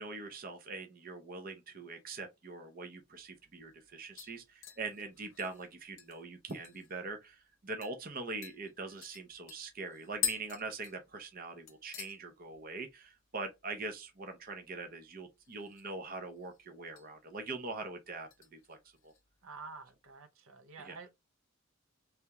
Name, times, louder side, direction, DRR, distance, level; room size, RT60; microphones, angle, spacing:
voice 1, 0.0-18.8 19.0-19.1 20.8-21.0, right 3 dB, 40° right, 0.6 m, -43 dB
sound 1, 3.1-3.2 3.6-3.9 4.2-7.0 7.3-7.4 7.8-8.0 8.4-11.4 11.7-12.2 12.5-12.9 13.2-13.3 15.4-16.0 16.3-17.1 17.5-17.8 18.3-19.2 19.6-19.7, left 9 dB, 60° left, 0.8 m, -43 dB
voice 2, 19.4-21.1, right 4 dB, 80° right, 0.8 m, -49 dB
3.4 x 2.9 x 3.4 m
head